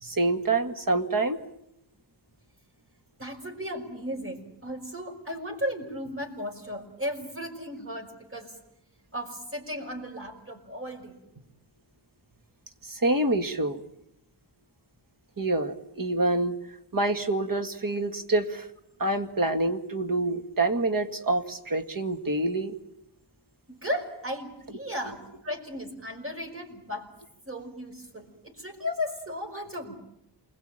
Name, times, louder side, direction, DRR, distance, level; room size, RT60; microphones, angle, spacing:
voice 1, 0.0-1.4 12.8-13.8 15.4-16.6 16.9-18.7 19.0-22.8, right 2 dB, 50° right, 7 dB, 2.1 m, -26 dB
voice 2, 3.2-8.5 9.1-11.2 23.7-25.2 25.4-27.1 27.5-29.9, equal, 30° right, 4 dB, 5.4 m, -35 dB
28.0 x 21.5 x 9.1 m, 0.83 s
wide cardioid pair, 90°, 42 cm